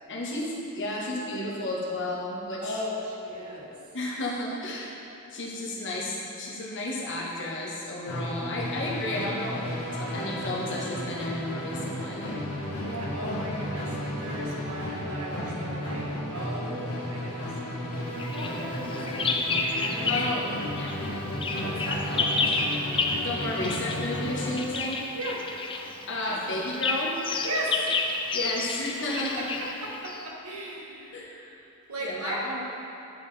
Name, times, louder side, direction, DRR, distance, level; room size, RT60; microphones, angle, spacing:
voice 1, 0.1-2.8 3.9-4.9 5.3-12.4 20.1-20.4 20.8-21.0 23.2-25.0 26.1-27.2 28.3-29.5 31.1-31.3 32.0-32.6, left 1 dB, 55° left, -4 dB, 1.2 m, -32 dB
voice 2, 2.6-3.8 12.8-17.5 18.1-19.5 19.8-20.4 21.5-22.6 25.1-25.4 26.2-26.4 27.4-28.2 29.3-32.5, right 1 dB, 80° right, -3 dB, 1.2 m, -36 dB
Musical instrument, 8.0-24.7, equal, 80° left, 1.4 m, -33 dB
Bird vocalization bird call bird song, 18.2-20.5 20.8-30.3, left 3 dB, 25° left, 0.4 m, -31 dB
9.0 x 5.4 x 3.3 m, 2.9 s
head